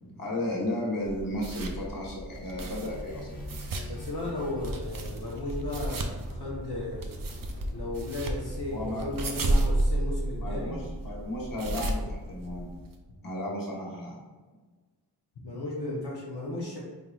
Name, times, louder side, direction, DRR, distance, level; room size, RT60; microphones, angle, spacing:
voice 1, 0.0-3.3 3.8-3.9 8.7-9.5 10.4-12.7 13.2-14.2, left 1 dB, 55° left, -4 dB, 1.3 m, -34 dB
sound 1, 1.0-13.0, right 1 dB, 55° right, 0.5 m, -33 dB
sound 2, 2.8-9.7, equal, 20° left, 1.1 m, -44 dB
voice 2, 3.9-7.1 7.7-10.8 15.4-16.8, left 2 dB, 75° left, -6 dB, 0.8 m, -35 dB
4.3 x 3.6 x 2.3 m, 1.3 s
wide cardioid pair, 85°, 41 cm